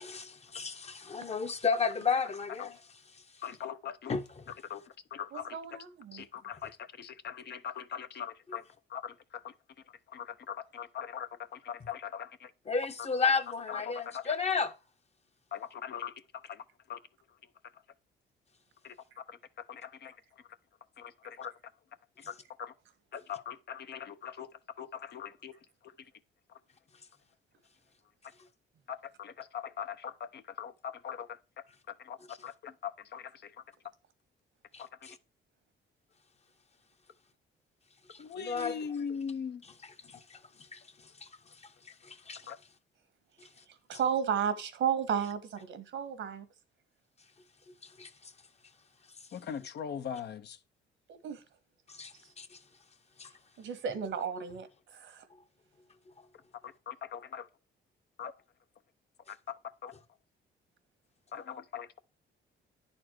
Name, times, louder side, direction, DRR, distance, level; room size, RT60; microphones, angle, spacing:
voice 1, 0.0-2.8 4.1-4.5 12.7-14.7 32.3-32.4 34.7-35.2 38.1-38.9 39.8-40.4 40.7-40.8 41.2-41.3 41.8-42.5 43.4-43.5 47.8-48.3 51.9-52.6 53.2-53.3, left 5 dB, 30° left, 1.0 m, -33 dB
voice 2, 3.4-4.1 4.7-4.8 5.1-5.6 6.1-8.6 8.9-9.5 10.1-12.5 13.7-14.3 15.5-16.1 16.4-16.6 16.9-17.0 18.8-18.9 19.3-19.4 19.7-20.1 21.0-21.5 22.3-22.7 23.1-24.5 24.8-25.5 28.9-31.4 31.9-32.2 32.4-33.5 34.8-34.9 38.2-39.6 42.5-42.6 49.3-50.6 56.6-57.5 58.2-58.3 59.3-59.9 61.3-62.0, left 8 dB, 55° left, 0.8 m, -41 dB
voice 3, 5.3-6.2 43.7-46.5 51.2-51.4 53.6-55.2, right 7 dB, 70° right, 1.4 m, -33 dB
9.9 x 4.4 x 4.6 m
cardioid pair, 90°, 20 cm